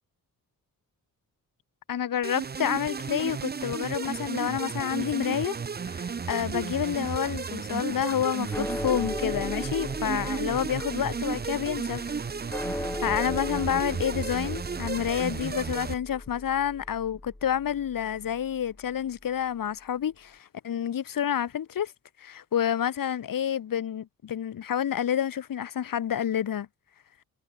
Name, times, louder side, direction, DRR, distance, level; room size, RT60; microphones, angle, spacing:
voice 1, 1.9-5.5 5.8-12.2 12.5-21.9 22.2-26.7, left 9 dB, 75° left, 3.2 m, -29 dB
sound 1, 2.2-15.9, right 5 dB, 30° right, 0.8 m, -33 dB
sound 2, 8.5-18.9, left 1 dB, 5° left, 1.1 m, -38 dB
wide cardioid pair, 130°, 33 cm